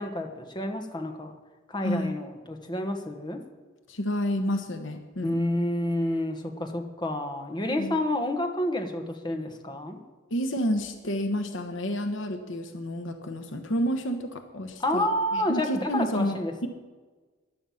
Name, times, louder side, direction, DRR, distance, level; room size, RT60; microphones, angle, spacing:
voice 1, 0.0-1.3 1.7-3.4 5.2-10.0 14.8-16.7, left 1 dB, 20° left, 4 dB, 1.4 m, -29 dB
voice 2, 1.8-2.1 3.9-5.4 7.8-8.0 10.3-16.7, equal, 65° left, 6 dB, 1.1 m, -30 dB
14.5 x 11.0 x 5.8 m, 1.4 s
head